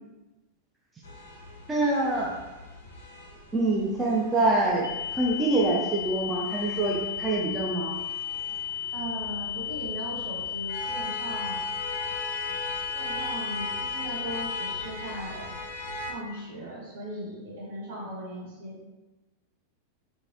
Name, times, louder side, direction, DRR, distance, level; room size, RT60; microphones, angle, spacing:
sound 1, 1.0-16.1, left 1 dB, 65° left, 0.5 m, -40 dB
voice 1, 1.7-2.3 3.5-4.9 5.2-8.0, right 2 dB, 15° right, -3 dB, 0.4 m, -25 dB
sound 2, 4.8-14.8, left 11 dB, 70° right, 1.3 m, -34 dB
voice 2, 8.9-11.7 12.9-15.6 16.0-18.8, right 1 dB, 50° right, -5 dB, 1.1 m, -38 dB
3.0 x 2.6 x 2.6 m, 1.1 s
figure-of-eight pair, 90°, 0 cm